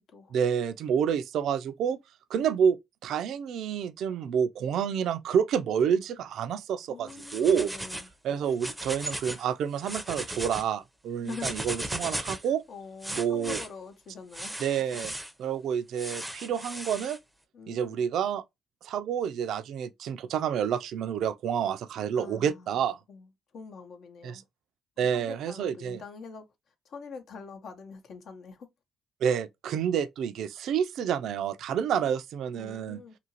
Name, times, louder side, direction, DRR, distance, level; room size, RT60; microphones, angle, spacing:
voice 1, 0.3-2.0 2.3-2.8 3.0-7.7 8.2-12.6 13.1-13.6 14.6-15.1 15.4-17.2 17.7-18.4 18.8-23.0 24.2-24.4 25.0-26.0 29.2-33.0, right 8 dB, 75° right, 0.3 m, -28 dB
voice 2, 6.9-8.1 11.2-11.6 12.4-14.6 14.8-15.0 17.5-18.0 22.1-24.5 25.0-28.7 32.6-33.2, left 5 dB, 65° left, 0.8 m, -45 dB
sound 1, 7.1-8.1 8.5-9.4 9.8-10.6 11.3-12.5 13.0-13.7 14.3-15.3 16.0-17.2, right 1 dB, 5° right, 0.5 m, -37 dB
2.8 x 2.5 x 2.8 m
cardioid pair, 90°, 0 cm